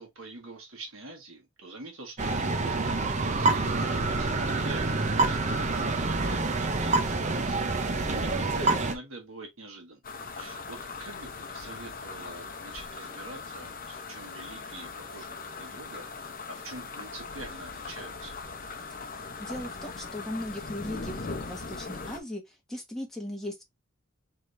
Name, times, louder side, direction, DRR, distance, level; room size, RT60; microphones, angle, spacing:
voice 1, 0.0-10.0 10.3-16.0 16.5-18.4, right 2 dB, 70° right, 1.5 m, -45 dB
sound 1, 2.2-8.9, right 3 dB, 35° right, 0.7 m, -27 dB
sound 2, 10.0-22.2, left 4 dB, 45° left, 0.8 m, -40 dB
voice 2, 19.0-23.6, left 1 dB, ahead, 1.3 m, -38 dB
4.9 x 3.5 x 2.6 m
head